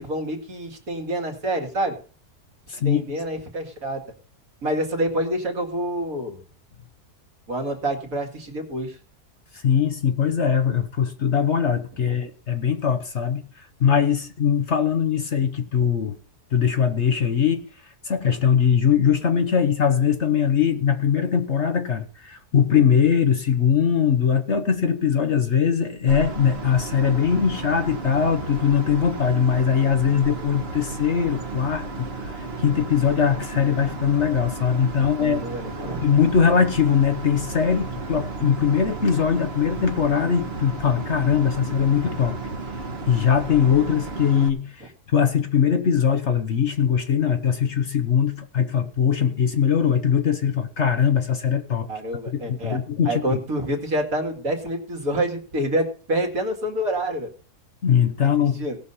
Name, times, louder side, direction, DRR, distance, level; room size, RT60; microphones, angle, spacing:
voice 1, 0.0-2.0 2.7-4.0 4.6-6.4 7.5-9.0 12.0-12.2 35.2-36.0 51.9-52.8 53.1-57.3 58.6-58.8, right 1 dB, 60° right, 3 dB, 2.6 m, -27 dB
voice 2, 2.7-3.2 9.5-16.2 16.5-35.4 36.0-42.4 43.1-51.9 52.3-53.4 57.8-58.7, left 7 dB, 50° left, 7 dB, 1.2 m, -21 dB
sound 1, 26.1-44.5, right 3 dB, 40° right, 1.5 m, -33 dB
17.5 x 6.3 x 5.6 m, 0.41 s
omnidirectional pair, 1.7 m